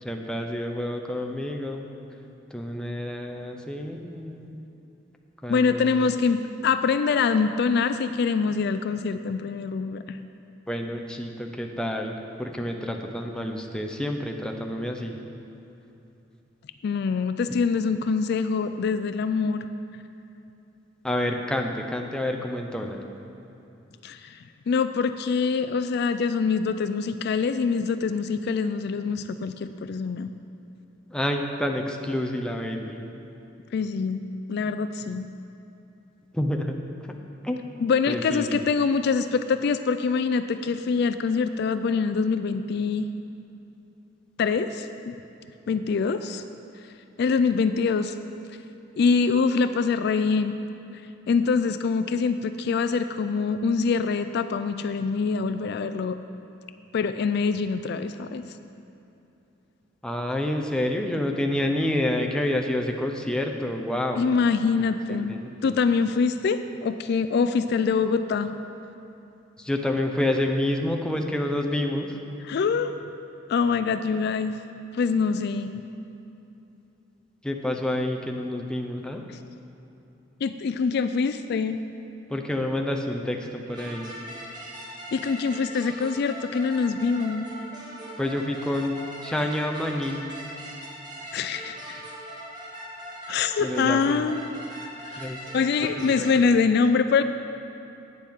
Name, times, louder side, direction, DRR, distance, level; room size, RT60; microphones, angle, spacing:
voice 1, 0.0-1.9 2.5-4.6 5.4-6.1 10.7-15.2 21.0-23.0 31.1-33.1 36.3-36.8 37.4-37.6 38.1-38.6 60.0-64.3 65.1-65.8 69.6-72.2 77.4-79.2 82.3-84.1 88.2-90.3 93.6-94.3 95.2-95.4 96.0-96.6, left 1 dB, 5° left, 2 dB, 0.6 m, -28 dB
voice 2, 5.5-10.2 16.8-19.7 24.0-30.3 33.7-34.2 34.5-35.3 37.8-43.0 44.4-45.2 45.7-46.4 47.2-48.1 49.0-50.5 51.3-56.2 56.9-58.4 64.2-65.3 65.6-68.5 72.5-73.0 73.5-74.5 74.9-75.8 80.4-81.8 85.1-87.5 91.3-92.0 93.3-94.6 95.1-97.2, left 5 dB, 60° left, 10 dB, 0.3 m, -24 dB
sound 1, 83.7-96.3, right 1 dB, 20° right, 1.4 m, -40 dB
12.0 x 9.3 x 3.6 m, 2.9 s
head